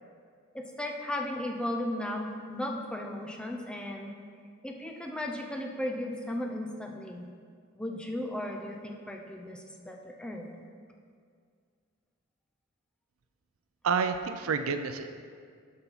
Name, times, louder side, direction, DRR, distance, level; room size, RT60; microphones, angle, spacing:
voice 1, 0.5-4.1 4.6-7.2 7.7-10.5, left 1 dB, 5° left, 1 dB, 0.5 m, -36 dB
voice 2, 13.8-15.1, right 5 dB, 70° right, 8 dB, 0.4 m, -29 dB
11.5 x 4.1 x 4.0 m, 2.1 s
head